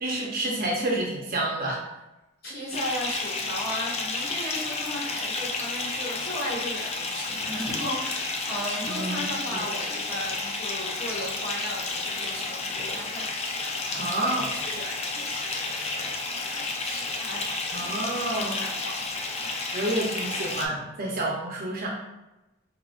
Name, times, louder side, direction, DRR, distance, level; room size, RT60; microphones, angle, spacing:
voice 1, 0.0-1.8 8.9-9.3 14.0-14.5 17.7-18.6 19.7-21.9, right 1 dB, 45° right, -2 dB, 0.6 m, -29 dB
voice 2, 2.4-20.8, equal, 50° left, -6 dB, 1.4 m, -36 dB
Bathtub (filling or washing) / Fill (with liquid), 2.7-20.7, left 3 dB, 30° left, 0.4 m, -31 dB
5.0 x 2.8 x 2.4 m, 0.99 s
head